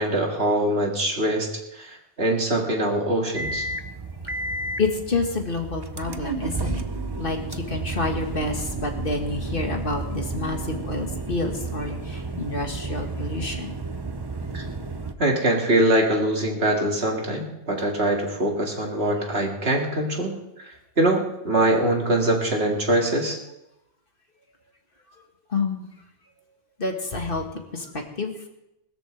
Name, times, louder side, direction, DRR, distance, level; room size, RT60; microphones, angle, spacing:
voice 1, 0.0-1.5 1.8-3.7 14.5-14.6 15.2-20.3 21.0-23.4, right 1 dB, 70° right, 0 dB, 2.6 m, -23 dB
sound 1, 3.3-15.1, right 3 dB, 25° right, 0.7 m, -32 dB
voice 2, 4.8-6.8 7.2-13.7 25.1-25.2 25.5-25.9 26.8-28.3, left 3 dB, 55° left, 3 dB, 2.0 m, -28 dB
21.0 x 13.5 x 3.4 m, 0.89 s
omnidirectional pair, 1.1 m